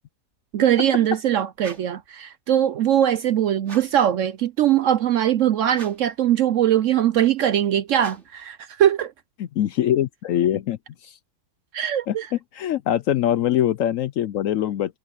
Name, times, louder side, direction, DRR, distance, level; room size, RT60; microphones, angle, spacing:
voice 1, 0.5-9.1 11.7-12.3, right 10 dB, 65° right, 0.8 m, -21 dB
sound 1, 1.6-2.1 3.6-4.1 5.7-6.2 7.9-8.4, right 3 dB, 45° right, 3.1 m, -43 dB
voice 2, 9.4-11.2 12.1-15.0, left 11 dB, 70° left, 0.8 m, -23 dB
omnidirectional pair, 1.7 m